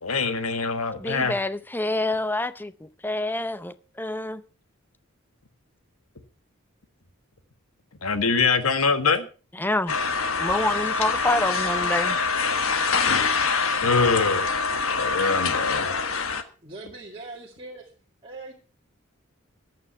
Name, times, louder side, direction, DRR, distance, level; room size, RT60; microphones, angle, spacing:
voice 1, 0.0-1.3 8.0-9.3 13.8-14.5 15.0-15.9, left 4 dB, 90° left, 1.6 m, -23 dB
voice 2, 1.0-4.4 9.6-10.0 10.4-12.2, left 1 dB, 10° left, 0.6 m, -27 dB
sound 1, 9.9-16.4, left 4 dB, 70° left, 1.4 m, -25 dB
voice 3, 16.6-17.9 18.2-18.5, right 2 dB, 25° right, 2.2 m, -40 dB
14.0 x 9.5 x 5.6 m
head